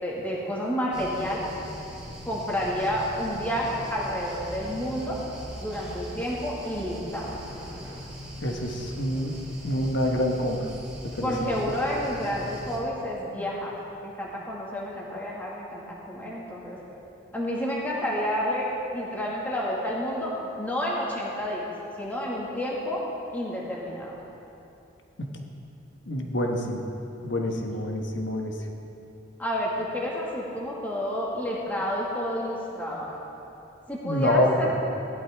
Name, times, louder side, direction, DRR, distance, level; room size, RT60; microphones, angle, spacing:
voice 1, 0.0-1.5 2.3-5.2 5.6-7.3 11.2-13.8 14.0-16.8 17.3-18.7 18.9-21.7 22.0-23.0 23.3-24.2 29.4-33.2 33.9-34.7, equal, 10° left, -5 dB, 2.0 m, -30 dB
sound 1, 0.9-12.8, equal, 5° right, 3.3 m, -40 dB
voice 2, 8.4-9.4 9.6-10.7 11.2-11.3 25.2-25.3 26.1-26.8 27.2-28.5 34.0-34.8, left 1 dB, 65° left, 2 dB, 1.3 m, -26 dB
17.5 x 11.5 x 3.6 m, 2.8 s
head